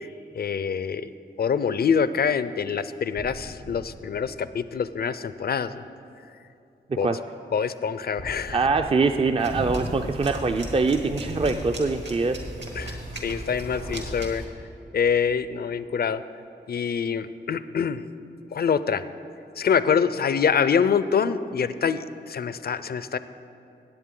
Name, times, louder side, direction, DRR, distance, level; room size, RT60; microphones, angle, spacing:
voice 1, 0.4-1.1 1.4-5.8 7.0-7.1 7.5-8.6 12.8-14.4 14.9-16.2 16.7-18.0 18.5-19.0 19.6-23.2, left 6 dB, 55° left, 14 dB, 0.4 m, -25 dB
Suspense High Tension, 3.1-5.4 8.2-10.7, equal, 90° right, 2.4 m, -43 dB
voice 2, 8.5-12.4, right 4 dB, 30° right, 6 dB, 0.4 m, -23 dB
sound 1, 9.4-14.4, right 1 dB, 70° right, 1.9 m, -35 dB
17.0 x 8.1 x 3.8 m, 2.6 s
cardioid pair, 50°, 19 cm